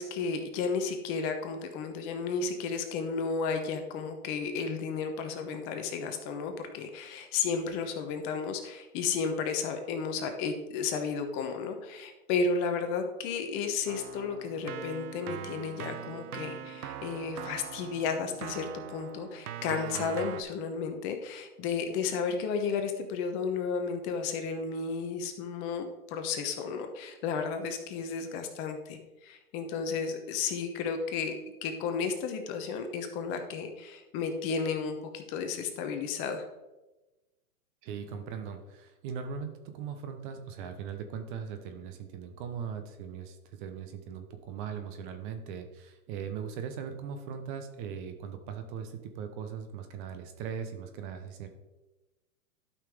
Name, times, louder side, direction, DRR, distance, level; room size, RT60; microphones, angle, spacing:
voice 1, 0.0-31.3 31.6-36.4, left 5 dB, 30° left, 6 dB, 0.9 m, -33 dB
Keyboard (musical), 13.9-20.4, right 9 dB, 75° right, 0.8 m, -41 dB
voice 2, 37.8-51.5, right 7 dB, 35° right, 7 dB, 0.9 m, -39 dB
12.0 x 5.7 x 3.6 m, 1.1 s
hypercardioid pair, 130°, 46 cm